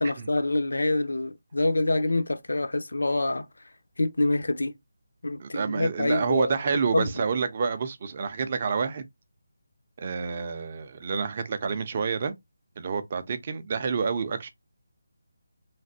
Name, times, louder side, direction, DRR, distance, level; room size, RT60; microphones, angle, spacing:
voice 1, 0.0-3.5 4.0-4.7 5.2-6.5 6.9-7.1, left 2 dB, 90° left, 0.5 m, -26 dB
voice 2, 5.4-9.0 10.0-12.3 12.8-14.5, right 5 dB, 25° right, 0.4 m, -28 dB
3.2 x 2.5 x 2.7 m
figure-of-eight pair, 175°, 0 cm